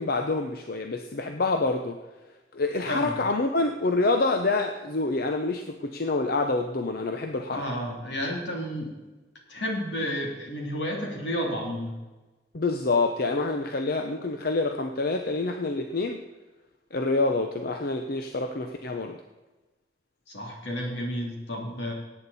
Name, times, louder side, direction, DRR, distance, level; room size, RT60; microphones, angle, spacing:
voice 1, 0.0-2.0 2.5-7.6 12.5-16.2 16.9-19.2, left 3 dB, 60° left, 5 dB, 0.8 m, -27 dB
voice 2, 7.5-9.0 9.5-11.9 20.3-21.9, equal, 85° left, 0 dB, 3.3 m, -31 dB
18.0 x 8.8 x 4.2 m, 1.2 s
head